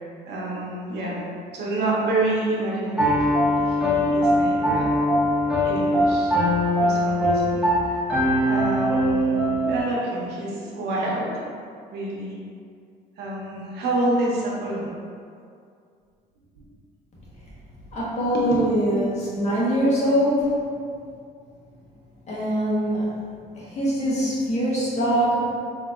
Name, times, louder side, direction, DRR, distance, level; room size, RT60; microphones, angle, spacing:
voice 1, 0.3-1.2 1.5-4.9 5.6-6.3 6.7-8.0 8.4-11.5 11.9-12.3 13.2-14.9 16.6-16.7 18.3-19.1 20.2-20.5, right 2 dB, 75° right, -5 dB, 0.9 m, -28 dB
Piano, 3.0-9.8, equal, 5° right, 0.9 m, -21 dB
voice 2, 17.9-20.4 22.3-23.2 23.5-25.5, equal, 40° left, -7 dB, 1.1 m, -23 dB
3.8 x 2.8 x 2.4 m, 2.3 s
cardioid pair, 110°, 17 cm